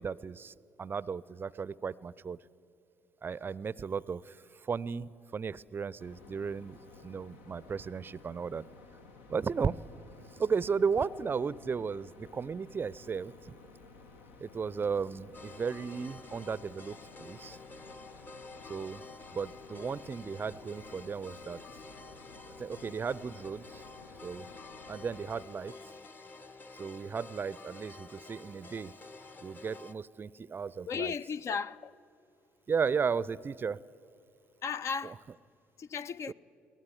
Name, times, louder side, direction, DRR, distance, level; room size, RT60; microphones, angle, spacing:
voice 1, 0.0-2.4 3.2-4.4 4.7-6.8 7.0-8.6 9.3-9.8 10.4-13.5 14.4-17.6 18.7-19.0 19.3-21.6 22.6-23.8 24.2-24.5 24.9-25.7 26.8-28.9 29.4-31.1 32.7-33.8 35.0-35.1 36.3-36.4, right 6 dB, 35° right, 0.5 m, -35 dB
sound 1, 6.0-25.4, left 3 dB, 75° left, 1.1 m, -54 dB
sound 2, 15.3-29.9, left 3 dB, 30° left, 1.0 m, -50 dB
voice 2, 30.8-31.9 34.6-35.2 35.8-36.3, left 6 dB, 45° left, 0.5 m, -35 dB
23.0 x 18.0 x 8.0 m
figure-of-eight pair, 50°, 7 cm